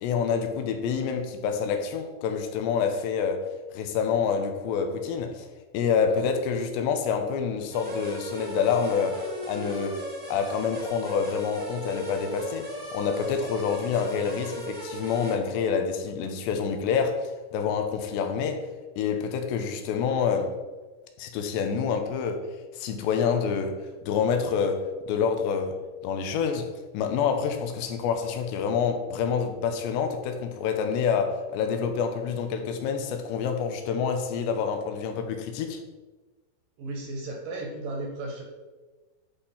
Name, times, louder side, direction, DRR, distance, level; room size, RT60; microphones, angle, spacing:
voice 1, 0.0-3.5 3.7-5.5 5.7-10.0 10.3-12.7 12.9-18.6 19.0-20.6 21.2-22.4 22.7-25.8 26.0-35.8, left 6 dB, 90° left, 6 dB, 3.1 m, -27 dB
sound 1, 7.7-15.4, equal, 25° right, 1.1 m, -37 dB
voice 2, 36.8-38.4, right 2 dB, 65° right, 1 dB, 2.3 m, -34 dB
10.0 x 5.6 x 4.3 m, 1.2 s
omnidirectional pair, 4.9 m